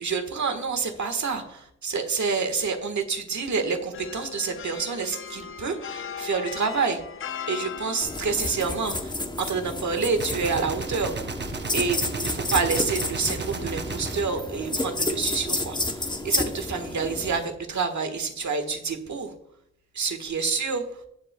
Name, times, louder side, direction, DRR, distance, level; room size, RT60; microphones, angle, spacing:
voice 1, 0.0-7.0 7.5-11.2 11.7-19.3 19.9-21.0, right 5 dB, 75° right, 7 dB, 1.5 m, -28 dB
sound 1, 3.9-14.2, left 7 dB, 45° left, 0.4 m, -41 dB
sound 2, 8.0-17.4, left 2 dB, 15° left, 0.8 m, -31 dB
Gunshot gunfire, 10.2-15.4, right 4 dB, 40° right, 0.8 m, -35 dB
17.5 x 7.6 x 2.3 m, 0.74 s
wide cardioid pair, 150°, 29 cm